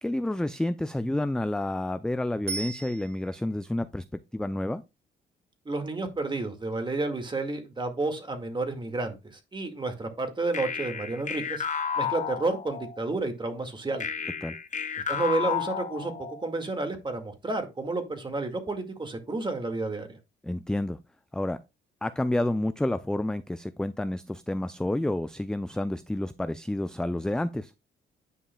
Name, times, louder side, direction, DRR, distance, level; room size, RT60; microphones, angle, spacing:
voice 1, 0.0-4.1 4.3-4.8 14.4-14.6 20.4-21.0 21.3-21.6 22.0-27.7, left 1 dB, 5° left, 0.4 m, -29 dB
Bicycle bell, 2.5-3.6 12.7-12.8, right 4 dB, 55° right, 3.1 m, -37 dB
voice 2, 5.7-11.6 12.0-14.1 15.1-20.2, right 2 dB, 25° right, 1.9 m, -31 dB
sound 1, 10.5-13.1 14.0-16.5, left 7 dB, 40° left, 0.9 m, -32 dB
9.9 x 5.4 x 2.2 m
cardioid pair, 90°, 20 cm